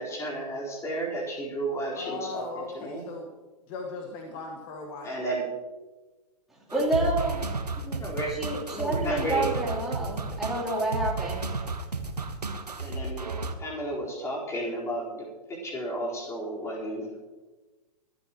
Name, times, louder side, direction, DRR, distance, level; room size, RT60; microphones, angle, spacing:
voice 1, 0.0-3.0 5.0-5.4 8.0-8.3 8.7-9.5 12.8-13.3 13.6-17.1, right 1 dB, 15° left, -4 dB, 4.4 m, -33 dB
voice 2, 2.0-3.3 3.7-5.2, left 3 dB, 35° left, 2 dB, 1.7 m, -38 dB
voice 3, 6.7-7.4 7.8-8.0 8.3-11.5, right 2 dB, ahead, -7 dB, 3.5 m, -29 dB
sound 1, 6.7-13.5, right 3 dB, 80° right, 1.3 m, -32 dB
23.5 x 12.0 x 3.1 m, 1.2 s
figure-of-eight pair, 110°, 20 cm